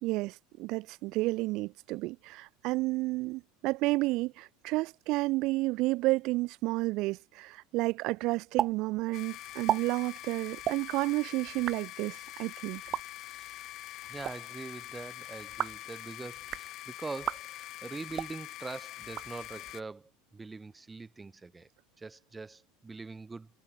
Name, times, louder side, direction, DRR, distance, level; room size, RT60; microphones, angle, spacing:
voice 1, 0.0-12.8, right 21 dB, 55° right, 2.7 m, -31 dB
sound 1, 8.6-8.7 9.0-9.1 9.5-9.8 10.6-10.8 11.5-11.8 12.8-13.0 14.0-14.3 15.4-15.8 16.4-16.7 17.2-17.4 18.1-18.3 19.0-19.7, right 11 dB, 35° right, 0.9 m, -34 dB
sound 2, 9.1-19.8, left 15 dB, 45° left, 3.8 m, -45 dB
voice 2, 14.1-21.7 22.0-23.5, right 3 dB, 10° right, 3.7 m, -43 dB
supercardioid pair, 135°, 0 cm